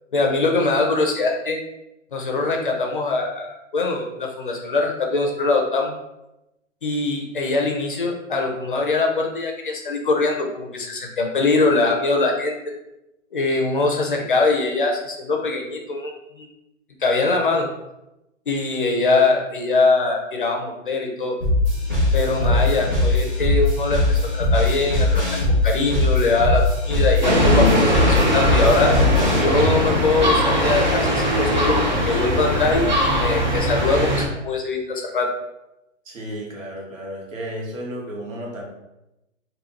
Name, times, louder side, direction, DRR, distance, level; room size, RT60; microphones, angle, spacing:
voice 1, 0.1-1.6 2.1-5.9 6.8-12.5 13.3-16.5 17.0-17.7 18.5-21.4 22.1-25.2 25.5-28.9 29.3-35.3, left 3 dB, 40° left, 2 dB, 0.5 m, -22 dB
sound 1, 21.4-29.4, left 2 dB, 15° right, 0.9 m, -20 dB
voice 2, 22.3-22.9 36.0-38.6, equal, 80° right, -3 dB, 1.5 m, -33 dB
sound 2, 27.2-34.3, equal, 35° right, 0.5 m, -20 dB
2.9 x 2.7 x 3.7 m, 0.92 s
hypercardioid pair, 175°, 39 cm